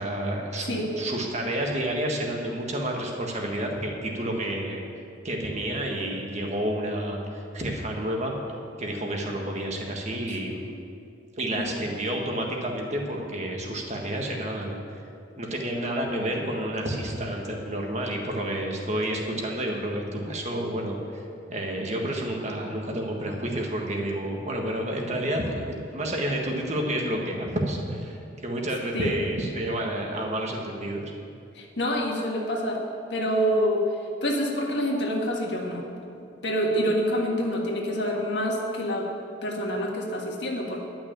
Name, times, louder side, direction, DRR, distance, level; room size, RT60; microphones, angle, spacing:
voice 1, 0.0-4.8 5.2-8.4 8.8-10.7 11.4-15.0 15.4-21.2 21.5-25.6 25.9-31.1, right 1 dB, 35° right, 1 dB, 1.5 m, -30 dB
voice 2, 31.5-32.8 33.1-33.8 34.2-35.8 36.4-39.1 39.4-40.8, equal, 65° left, -1 dB, 1.7 m, -27 dB
11.0 x 6.1 x 8.9 m, 2.5 s
head